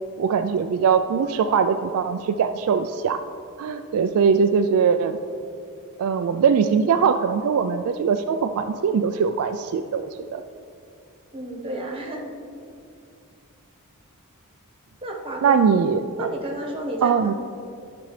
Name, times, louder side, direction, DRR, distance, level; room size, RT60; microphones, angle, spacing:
voice 1, 0.2-3.2 3.6-5.1 6.0-10.4 15.4-16.3 17.0-17.3, right 6 dB, 70° right, 8 dB, 0.3 m, -21 dB
voice 2, 11.3-12.3 15.0-15.6 16.1-17.1, right 1 dB, 25° right, 0 dB, 1.2 m, -31 dB
12.0 x 6.1 x 3.2 m, 2.4 s
head